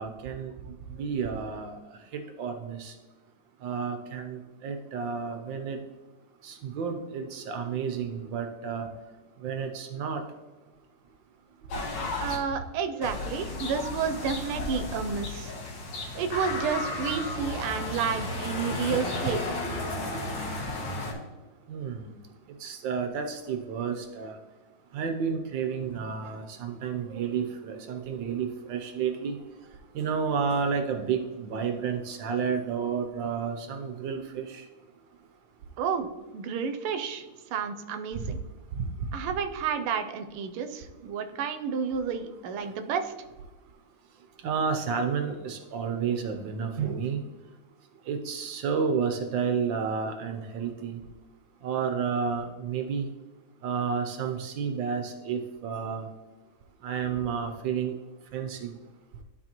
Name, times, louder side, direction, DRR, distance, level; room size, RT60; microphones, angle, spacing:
voice 1, 0.0-2.9 3.6-5.8 6.4-8.9 9.4-10.2 11.7-11.8 21.7-22.2 22.6-24.4 24.9-29.4 29.9-34.7 38.7-38.9 42.6-42.7 44.4-47.2 48.0-51.0 51.6-53.1 53.6-56.1 56.8-57.9 58.3-58.8, right 6 dB, 70° right, 5 dB, 1.2 m, -31 dB
sound 1, 11.7-12.4 13.0-21.1, left 2 dB, 65° left, 1.8 m, -33 dB
voice 2, 12.2-15.5 16.1-19.5 35.8-36.1 36.3-37.2 37.5-38.4 39.1-43.1, right 6 dB, 90° right, 8 dB, 1.5 m, -30 dB
12.0 x 4.1 x 2.9 m, 1.3 s
omnidirectional pair, 2.3 m